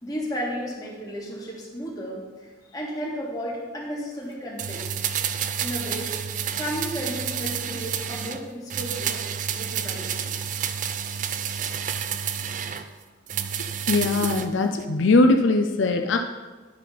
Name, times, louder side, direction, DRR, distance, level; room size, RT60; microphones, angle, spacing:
voice 1, 0.0-5.0 5.6-6.1 6.5-9.3 9.5-10.3, equal, 20° left, -5 dB, 1.9 m, -33 dB
sound 1, 4.6-8.4 8.7-12.9 13.3-14.5 14.8-14.9, right 8 dB, 40° right, 0.4 m, -29 dB
voice 2, 13.9-16.2, left 2 dB, 80° left, 5 dB, 0.5 m, -20 dB
10.0 x 4.2 x 5.7 m, 1.3 s
head